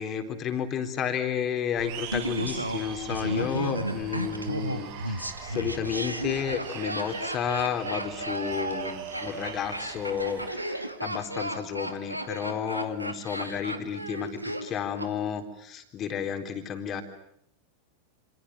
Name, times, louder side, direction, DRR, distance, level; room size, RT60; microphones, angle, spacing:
voice 1, 0.0-17.0, left 8 dB, 30° left, 7 dB, 3.9 m, -32 dB
sound 1, 1.7-10.5, right 8 dB, 50° right, 5.3 m, -41 dB
Laughter, 2.1-15.1 15.4-15.5, right 1 dB, 85° right, 2.3 m, -34 dB
28.0 x 27.0 x 7.7 m, 0.73 s
figure-of-eight pair, 90°, 0 cm